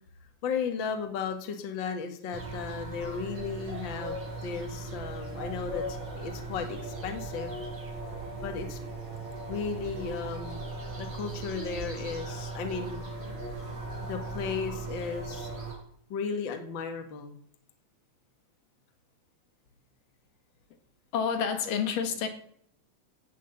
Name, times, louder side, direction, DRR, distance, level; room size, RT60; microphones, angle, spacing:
voice 1, 0.4-7.5 8.4-8.8 9.5-10.7 11.0-13.0 14.1-15.5 16.1-17.3, left 6 dB, 40° left, 6 dB, 2.0 m, -35 dB
sound 1, 2.3-15.8, right 2 dB, 80° right, 6.6 m, -38 dB
voice 2, 21.1-22.3, left 7 dB, 75° left, 7 dB, 3.3 m, -28 dB
17.0 x 6.4 x 8.1 m, 0.65 s
omnidirectional pair, 3.8 m